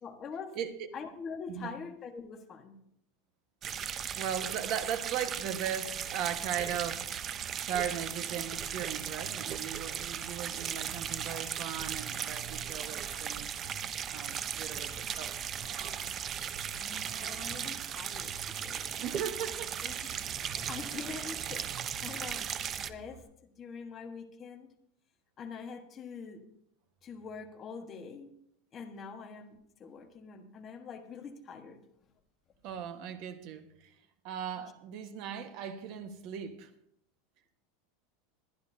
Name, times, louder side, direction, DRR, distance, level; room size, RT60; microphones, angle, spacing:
voice 1, 0.0-0.6 0.9-2.7 16.7-18.3 18.6-19.1 19.8-19.9 20.4-21.7 21.9-22.5 22.9-23.2 23.6-24.7 25.4-26.4 27.0-28.3 28.7-31.8, left 5 dB, 20° left, 4 dB, 1.2 m, -44 dB
voice 2, 0.5-0.9 1.5-1.8 4.1-7.3 7.6-13.6 14.1-15.3 19.0-20.2 22.4-22.5 32.6-33.9 34.2-36.7, right 8 dB, 40° right, 8 dB, 1.2 m, -38 dB
sound 1, 3.6-22.9, right 8 dB, 25° right, 0.5 m, -37 dB
Vehicle, 6.0-23.2, right 5 dB, 90° right, 3.0 m, -51 dB
22.5 x 10.5 x 2.7 m, 0.72 s
supercardioid pair, 170°, 0 cm